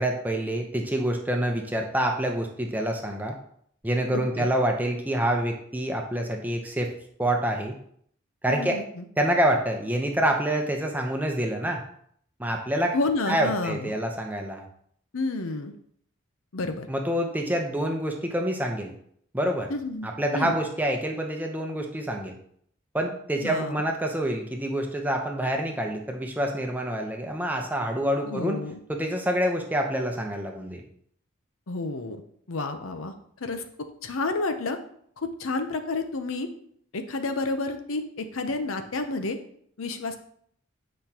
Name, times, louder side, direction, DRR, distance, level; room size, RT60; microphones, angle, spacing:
voice 1, 0.0-3.4 3.8-6.9 7.2-7.8 8.4-8.8 9.2-11.8 12.4-12.9 13.3-14.6 16.9-18.9 19.3-19.7 20.0-22.4 22.9-28.6 28.9-30.8, right 1 dB, 10° right, 2 dB, 0.8 m, -27 dB
voice 2, 4.1-4.5 8.5-9.1 12.9-14.0 15.1-15.7 16.5-16.9 19.7-20.5 23.4-23.8 28.2-28.8 31.7-32.2 32.5-33.1 33.4-33.6 34.0-34.8 35.2-36.5 36.9-39.4 39.8-40.2, left 3 dB, 90° left, 7 dB, 0.7 m, -30 dB
8.0 x 5.1 x 2.9 m, 0.65 s
head